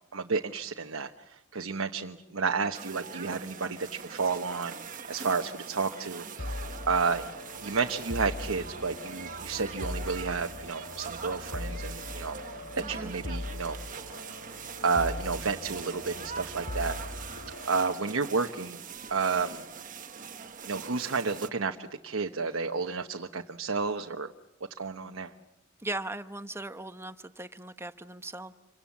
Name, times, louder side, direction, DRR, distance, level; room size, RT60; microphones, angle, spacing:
voice 1, 0.1-4.7 5.1-7.3 7.6-12.4 12.8-13.8 14.8-17.3 17.6-18.8 19.1-19.6 20.7-24.3 24.8-25.3, right 4 dB, 75° right, 5 dB, 1.0 m, -31 dB
sound 1, 2.7-21.5, right 6 dB, 40° right, 1.4 m, -43 dB
sound 2, 6.4-17.7, left 1 dB, 85° left, 3.6 m, -40 dB
voice 2, 12.8-13.1 25.8-28.5, right 2 dB, 10° right, 9 dB, 1.0 m, -38 dB
27.5 x 25.0 x 7.3 m, 0.98 s
head